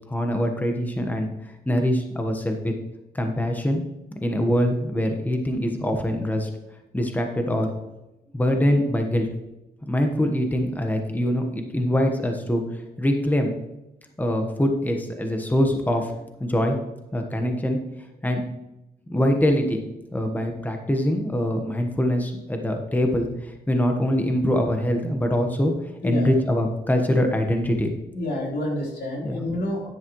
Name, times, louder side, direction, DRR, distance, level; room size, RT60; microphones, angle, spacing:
voice 1, 0.1-1.3 1.7-2.7 3.1-3.8 4.2-6.5 6.9-7.7 8.3-9.3 9.9-12.6 13.0-13.5 14.2-16.1 16.4-16.8 17.1-17.8 18.2-18.4 19.1-19.8 20.1-25.7 26.0-28.0 29.2-29.4, equal, 10° left, 3 dB, 1.2 m, -23 dB
voice 2, 28.1-29.9, left 1 dB, 85° left, -3 dB, 4.0 m, -28 dB
10.5 x 10.0 x 3.1 m, 0.93 s
wide cardioid pair, 115°, 17 cm